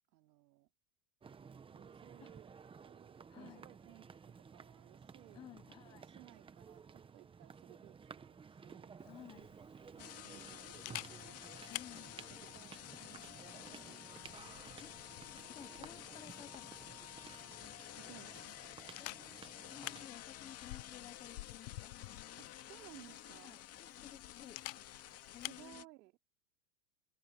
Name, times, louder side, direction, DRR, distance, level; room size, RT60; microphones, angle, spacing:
voice 1, 0.1-0.7 1.7-2.5 2.8-5.5 5.8-8.9 10.0-14.3 18.0-18.6 22.4-23.6 25.5-26.1, right 18 dB, 70° right, 2.7 m, -60 dB
sound 1, 1.2-20.1, right 6 dB, 10° right, 0.8 m, -55 dB
voice 2, 3.3-3.6 5.3-6.1 9.0-9.5 11.7-12.2 14.8-17.0 19.0-19.3 19.7-21.9 23.3-24.6 25.3-25.9, left 11 dB, 10° left, 0.3 m, -55 dB
Camera, 9.0-25.7, left 19 dB, 75° left, 0.7 m, -52 dB
sound 2, 10.0-25.8, left 12 dB, 30° left, 2.0 m, -52 dB
open air
supercardioid pair, 140°, 49 cm